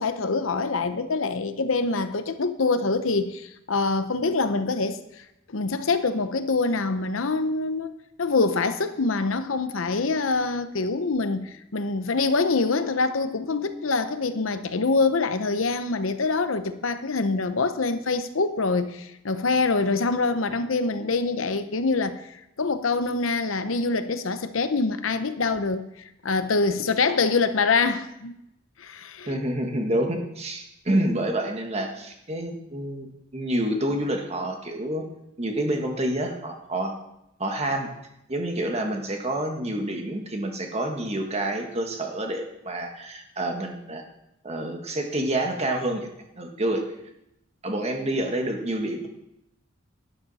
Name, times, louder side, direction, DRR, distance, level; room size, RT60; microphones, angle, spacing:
voice 1, 0.0-5.0 5.5-25.9 26.2-28.3 28.8-29.4, left 3 dB, 80° left, 0.8 m, -25 dB
voice 2, 29.3-35.0 35.4-36.9 37.4-37.9 38.3-44.0 44.4-46.1 46.4-46.9 47.6-49.1, right 1 dB, 30° right, 1.6 m, -28 dB
12.0 x 10.5 x 4.2 m
head